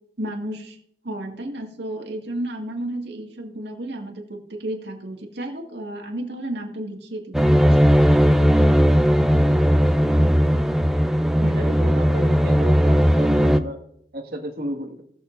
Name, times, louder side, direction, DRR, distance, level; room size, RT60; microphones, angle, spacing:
voice 1, 0.2-0.8 1.0-7.9, right 1 dB, 80° right, 1 dB, 2.1 m, -32 dB
sound 1, 7.3-13.6, equal, ahead, 0.5 m, -17 dB
voice 2, 11.4-13.8 14.1-15.0, right 1 dB, 55° right, 0 dB, 2.0 m, -33 dB
19.5 x 7.0 x 2.7 m, 0.70 s
head